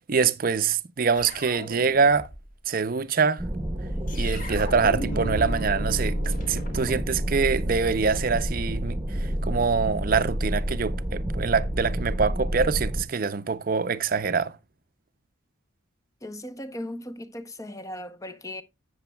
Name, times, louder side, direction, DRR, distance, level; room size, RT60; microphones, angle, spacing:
voice 1, 0.1-2.3 2.7-3.4 4.1-6.2 6.5-14.6, right 5 dB, 45° right, 0.6 m, -25 dB
sound 1, 1.2-2.5 4.1-5.7 6.0-7.6, equal, 40° left, 1.9 m, -36 dB
sound 2, 3.4-13.0, equal, 20° right, 1.0 m, -29 dB
sound 3, 5.1-10.3, equal, 70° left, 2.3 m, -42 dB
voice 2, 16.2-18.6, left 1 dB, 15° left, 0.7 m, -37 dB
13.0 x 8.5 x 2.2 m
head